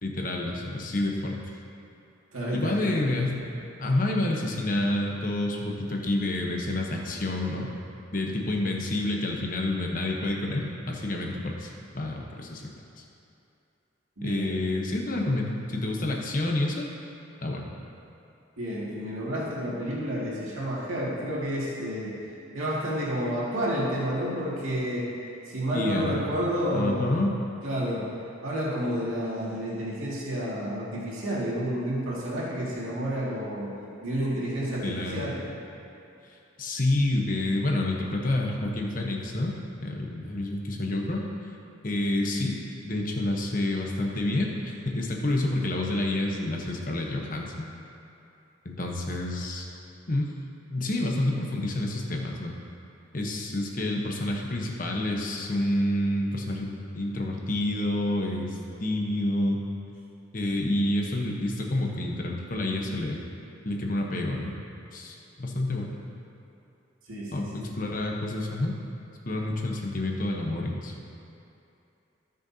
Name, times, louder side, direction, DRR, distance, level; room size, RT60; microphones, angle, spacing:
voice 1, 0.0-1.4 2.5-3.4 3.8-7.7 8.1-12.6 14.2-16.9 17.4-17.7 25.7-26.2 26.7-27.3 34.8-35.2 36.6-39.5 39.8-41.2 41.8-42.6 42.8-47.7 48.6-49.7 50.1-50.3 50.7-52.5 53.1-59.6 60.3-63.2 63.6-64.5 64.9-66.0 67.3-68.8 69.3-70.9, left 1 dB, 40° left, 0 dB, 1.1 m, -28 dB
voice 2, 2.3-3.0 14.2-14.6 18.6-22.1 22.5-25.0 25.5-27.1 27.6-28.1 28.4-33.7 34.0-35.4 67.1-67.5, equal, 90° right, -7 dB, 2.3 m, -30 dB
17.0 x 6.5 x 2.9 m, 2.7 s
head